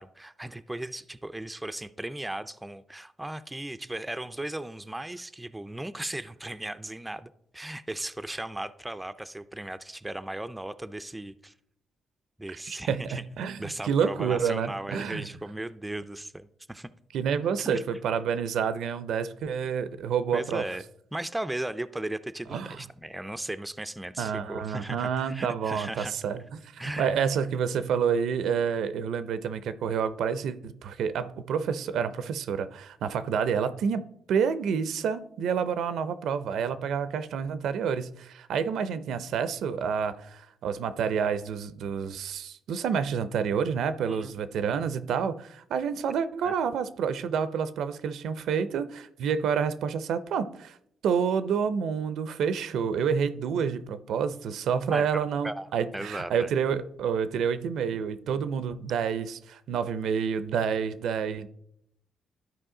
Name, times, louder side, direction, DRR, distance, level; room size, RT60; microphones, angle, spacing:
voice 1, 0.0-11.5 12.4-13.2 13.6-16.9 17.7-17.8 20.3-20.8 21.1-26.1 26.8-27.1 44.1-44.3 46.4-46.5 54.9-55.7 55.9-56.5, right 1 dB, 10° right, 12 dB, 0.4 m, -36 dB
voice 2, 12.7-15.3 17.1-20.6 22.5-22.8 24.2-26.4 26.7-34.0 34.3-50.8 51.0-61.5, right 7 dB, 80° right, 13 dB, 0.5 m, -28 dB
12.5 x 4.8 x 3.8 m, 0.73 s
cardioid pair, 105°, 0 cm